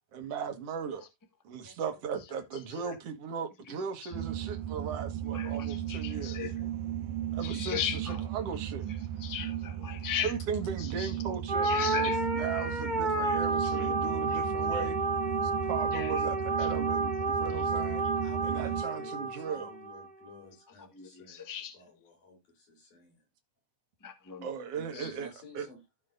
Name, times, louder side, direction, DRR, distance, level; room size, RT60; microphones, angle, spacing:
voice 1, 0.1-1.0 1.4-6.4 7.3-8.9 10.2-15.0 15.4-18.0 18.4-19.7 24.4-25.3 25.5-25.7, right 6 dB, 55° right, 2.4 m, -37 dB
sound 1, 4.1-18.8, right 11 dB, 75° right, 2.2 m, -35 dB
voice 2, 5.3-6.6 7.4-8.3 9.2-10.3 10.8-11.1 11.6-12.2 12.5-12.7 13.6-14.4 14.7-14.8 15.9-16.2 16.6-17.1 18.5-18.6 20.8-21.8 24.0-24.5 24.9-25.1, left 8 dB, 25° left, 0.4 m, -38 dB
sound 2, 11.5-20.1, right 2 dB, 30° right, 0.8 m, -31 dB
voice 3, 18.2-21.4 21.7-23.2 24.7-25.8, left 2 dB, 75° left, 6.4 m, -52 dB
15.5 x 5.2 x 2.5 m
omnidirectional pair, 3.5 m